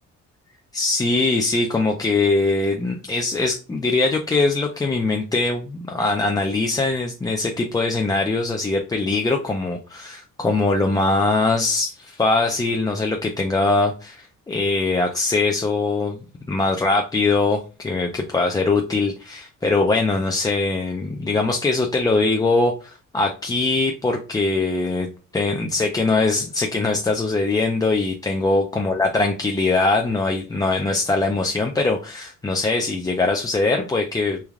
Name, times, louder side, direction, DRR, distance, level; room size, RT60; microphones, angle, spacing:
voice 1, 0.7-16.2 16.5-25.1 25.3-34.4, left 3 dB, 15° left, 2 dB, 0.3 m, -22 dB
3.2 x 2.2 x 2.3 m, 0.35 s
cardioid pair, 90°, 30 cm